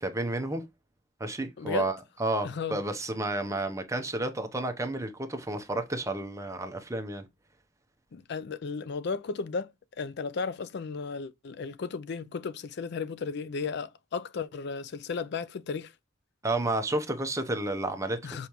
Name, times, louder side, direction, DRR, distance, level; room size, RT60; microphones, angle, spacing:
voice 1, 0.0-0.6 1.2-7.2 16.4-18.2, right 2 dB, 15° right, 0.8 m, -31 dB
voice 2, 1.6-1.9 2.4-2.8 8.1-15.9 18.2-18.5, left 5 dB, 55° left, 0.4 m, -34 dB
7.0 x 4.6 x 3.0 m
head